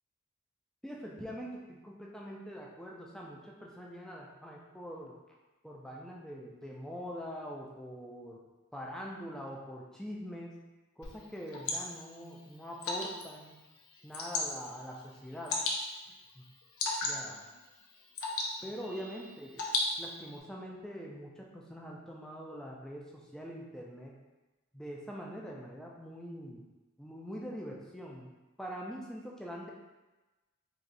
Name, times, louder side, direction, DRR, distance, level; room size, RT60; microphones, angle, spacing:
voice 1, 0.8-5.2 5.6-8.4 8.7-10.6 11.0-13.6 14.0-15.6 16.3-16.4 17.0-17.4 18.6-19.6 20.0-24.1 24.7-26.7 27.0-28.3 28.6-29.7, equal, 5° left, -3 dB, 0.4 m, -44 dB
Water / Drip, 11.0-20.4, left 2 dB, 90° left, 0.6 m, -38 dB
4.0 x 2.8 x 2.6 m, 1.1 s
head